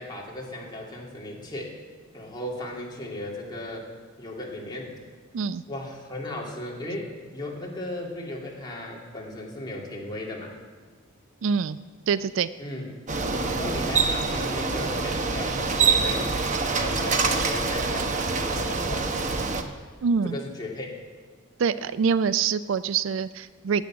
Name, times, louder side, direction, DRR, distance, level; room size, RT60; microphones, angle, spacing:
voice 1, 0.0-1.7 2.1-3.9 4.2-4.9 5.7-10.5 12.6-12.9 13.4-16.3 16.7-19.1 20.2-21.0, left 1 dB, 20° left, -3 dB, 2.4 m, -36 dB
voice 2, 11.4-11.8 12.1-12.5 20.0-20.4 21.6-23.9, right 6 dB, 65° right, 15 dB, 0.4 m, -25 dB
Bicycle, 13.1-19.6, right 4 dB, 35° right, 0.8 m, -25 dB
10.5 x 8.3 x 8.6 m, 1.5 s
head